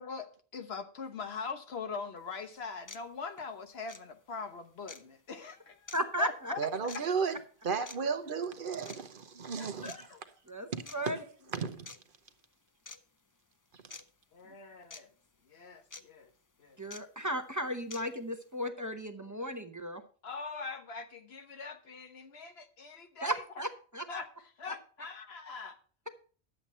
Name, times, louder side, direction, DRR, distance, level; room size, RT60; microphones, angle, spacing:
voice 1, 0.0-7.0 9.6-10.2 11.0-11.1 14.3-15.1 15.5-16.3 16.6-16.8 20.2-23.4 24.1-25.8, left 4 dB, 75° left, 1.3 m, -42 dB
sound 1, 2.2-2.3 2.9-3.0 3.9-4.0 4.9-5.0 5.9-6.0 6.9-7.0 7.9-8.0 8.9-9.0 9.9-10.0 10.9-11.0 11.9-12.0 12.9-13.0 13.9-14.0 14.9-15.0 15.9-16.0 16.9-17.0 17.9-18.0, left 4 dB, 25° left, 0.4 m, -46 dB
voice 2, 5.9-6.5 10.5-11.2 16.8-20.0 23.2-23.7 23.9-24.0, equal, 20° right, 0.9 m, -35 dB
voice 3, 6.6-7.4 7.6-9.9 10.7-11.1 11.5-11.9 13.8-14.0, right 5 dB, 55° right, 1.0 m, -34 dB
11.0 x 7.9 x 4.2 m
omnidirectional pair, 1.1 m